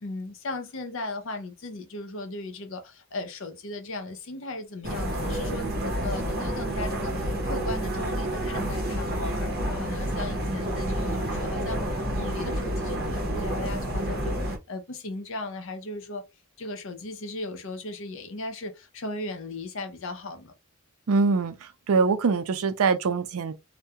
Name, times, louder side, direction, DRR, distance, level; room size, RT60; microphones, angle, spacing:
voice 1, 0.0-11.8 12.1-16.2 16.6-20.5, left 2 dB, 60° left, 0.6 m, -37 dB
sound 1, 4.8-14.6, right 1 dB, 45° right, 0.7 m, -29 dB
voice 2, 21.1-23.5, right 4 dB, 75° right, 0.4 m, -24 dB
2.3 x 2.1 x 2.7 m
head